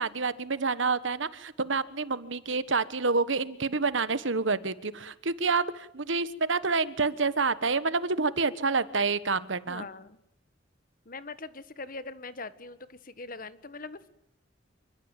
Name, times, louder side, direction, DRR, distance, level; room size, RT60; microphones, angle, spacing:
voice 1, 0.0-9.9, right 4 dB, 75° right, 15 dB, 1.3 m, -28 dB
voice 2, 9.7-10.2 11.0-14.1, left 3 dB, 45° left, 14 dB, 1.5 m, -42 dB
27.0 x 23.5 x 9.1 m, 0.75 s
head